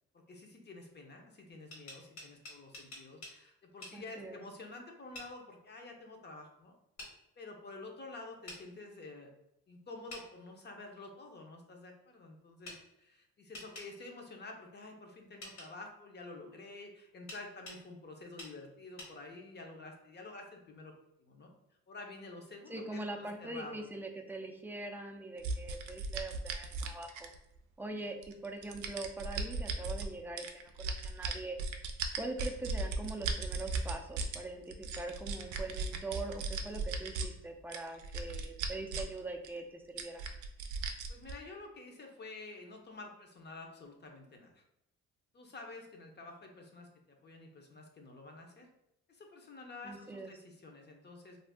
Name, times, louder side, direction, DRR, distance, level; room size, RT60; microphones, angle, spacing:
voice 1, 0.3-6.7 7.4-9.3 9.7-20.9 21.2-21.5 21.9-23.9 41.1-44.6 45.3-48.7 49.1-51.4, left 2 dB, 35° left, 2 dB, 0.6 m, -49 dB
sound 1, 1.5-3.4 3.8-4.0 5.1-5.3 7.0-7.1 8.5-8.6 10.1-10.3 12.6-12.8 13.5-13.9 15.4-15.7 17.3-17.8 18.4-18.5 19.0-19.1, left 1 dB, 70° left, 1.4 m, -47 dB
voice 2, 3.9-4.4 22.7-27.3 27.8-31.6 32.1-40.2 49.8-50.3, right 2 dB, 5° right, 3 dB, 0.4 m, -42 dB
sound 2, 25.4-27.6 28.2-30.1 30.4-34.4 34.7-37.3 37.7-39.2 39.4-39.5 40.0-41.3, right 4 dB, 75° right, 0.5 m, -37 dB
2.6 x 2.3 x 3.5 m, 0.82 s
cardioid pair, 90°, 30 cm